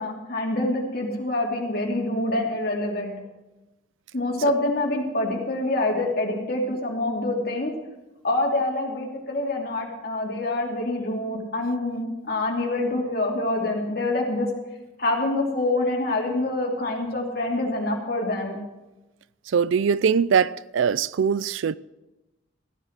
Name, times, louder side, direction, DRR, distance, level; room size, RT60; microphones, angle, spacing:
voice 1, 0.0-3.1 4.1-7.7 8.2-12.0 12.3-14.5 15.0-18.6, left 2 dB, 50° left, 2.9 m, -26 dB
voice 2, 19.5-21.7, right 6 dB, 75° right, 0.4 m, -22 dB
15.0 x 10.0 x 6.5 m
head